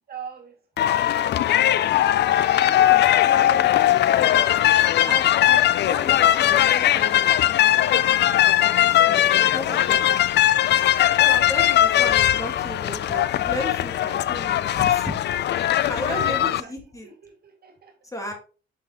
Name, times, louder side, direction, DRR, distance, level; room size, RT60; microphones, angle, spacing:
voice 1, 0.1-2.0 4.1-4.3 8.2-9.5 10.9-11.4 15.8-16.7 17.0-17.9, right 6 dB, 50° right, 3 dB, 2.2 m, -44 dB
sound 1, 0.8-16.6, left 12 dB, 60° left, 0.4 m, -19 dB
voice 2, 2.6-10.3 10.6-17.1 18.0-18.3, left 1 dB, 15° left, 3 dB, 1.7 m, -35 dB
6.0 x 5.8 x 2.9 m, 0.36 s
cardioid pair, 90°, 20 cm